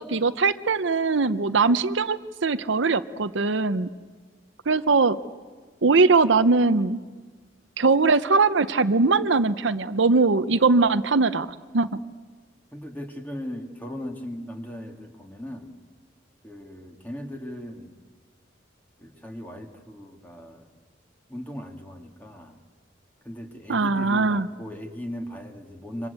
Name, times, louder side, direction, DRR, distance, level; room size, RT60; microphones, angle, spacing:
voice 1, 0.0-3.9 4.7-5.2 5.8-7.0 7.8-11.5 11.7-11.9 23.7-24.5, right 3 dB, 70° right, 12 dB, 0.8 m, -21 dB
voice 2, 12.7-15.7 16.4-17.9 19.0-20.7 21.3-22.6 23.2-26.1, equal, 10° left, 4 dB, 2.2 m, -38 dB
28.0 x 25.0 x 8.3 m, 1.4 s
head